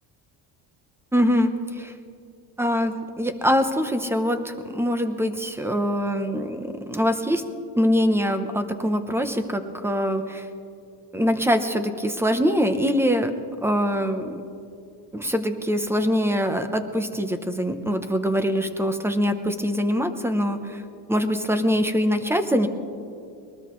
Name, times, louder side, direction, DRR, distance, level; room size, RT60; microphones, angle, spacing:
voice 1, 1.1-1.9 2.6-7.4 7.7-10.5 11.1-13.3 13.6-14.3 15.1-20.8 21.1-22.7, equal, 5° right, 8 dB, 0.7 m, -23 dB
22.0 x 19.0 x 3.1 m, 2.5 s
cardioid pair, 165°, 46 cm